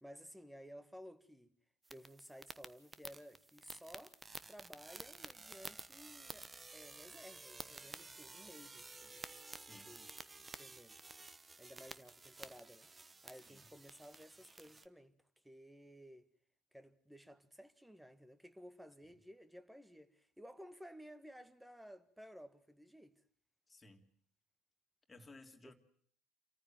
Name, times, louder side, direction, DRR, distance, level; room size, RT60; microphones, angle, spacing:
voice 1, 0.0-1.5 1.9-4.2 4.5-6.5 6.7-9.3 9.7-10.1 10.4-11.0 11.6-15.2 15.4-16.3 16.7-23.2 25.6-25.7, equal, 5° right, 1.8 m, -56 dB
sound 1, 1.8-14.9, right 3 dB, 20° right, 1.1 m, -52 dB
voice 2, 9.6-10.0 13.4-13.6 19.0-19.1 23.7-24.1 25.1-25.7, left 2 dB, 20° left, 3.1 m, -59 dB
27.0 x 14.5 x 8.9 m
hypercardioid pair, 65°, 0 cm